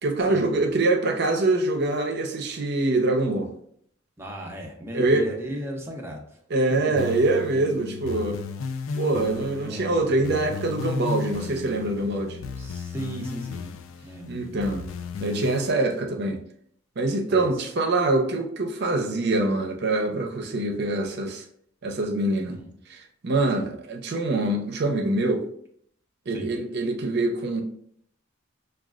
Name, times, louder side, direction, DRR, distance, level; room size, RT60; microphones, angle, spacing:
voice 1, 0.0-3.5 4.9-5.3 6.5-8.4 8.9-12.4 14.3-14.8 15.2-16.4 17.0-21.4 21.8-22.6 22.9-23.0 23.2-25.4 26.3-27.6, right 2 dB, 55° right, 3 dB, 0.6 m, -24 dB
voice 2, 4.2-6.4 6.7-6.8 9.6-10.0 12.6-14.4 17.3-17.5 22.5-22.7 23.5-23.7 26.3-26.5, right 1 dB, 10° right, 0 dB, 0.6 m, -36 dB
sound 1, 7.0-15.7, left 5 dB, 80° left, 0.4 m, -34 dB
6.0 x 2.3 x 2.4 m, 0.66 s
head